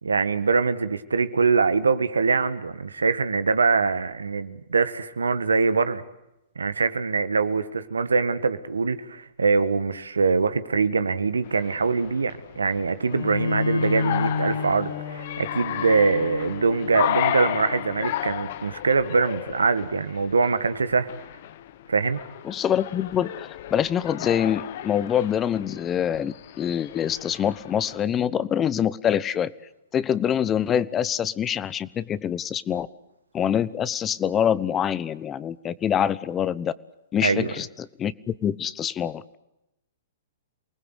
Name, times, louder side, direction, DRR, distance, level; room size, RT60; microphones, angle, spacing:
voice 1, 0.0-6.0 6.5-21.1 21.9-22.2 37.2-37.5, right 4 dB, 90° right, 12 dB, 1.7 m, -23 dB
sound 1, 11.4-28.0, left 12 dB, 55° left, 1.3 m, -34 dB
Bowed string instrument, 13.1-18.7, left 5 dB, 75° left, 7.8 m, -31 dB
voice 2, 22.5-29.5 29.9-32.9 33.3-36.7 37.1-39.4, left 9 dB, 25° left, 18 dB, 1.0 m, -25 dB
28.0 x 20.0 x 8.1 m, 0.90 s
hypercardioid pair, 120°, 0 cm